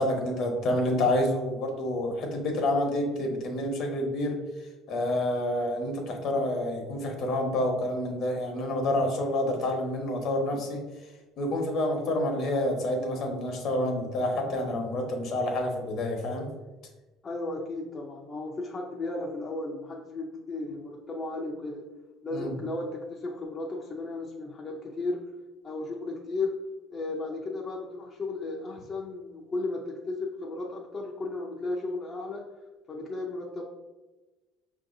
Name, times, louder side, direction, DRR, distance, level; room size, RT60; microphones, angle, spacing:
voice 1, 0.0-4.4 4.9-10.8 11.4-16.5 22.3-22.5, left 1 dB, 55° left, 2 dB, 0.9 m, -28 dB
voice 2, 17.2-21.9 22.2-25.3 25.6-26.6 26.9-32.5 32.9-33.6, left 2 dB, 30° left, -2 dB, 0.5 m, -34 dB
5.6 x 2.7 x 2.6 m, 1.1 s
cardioid pair, 125°, 0 cm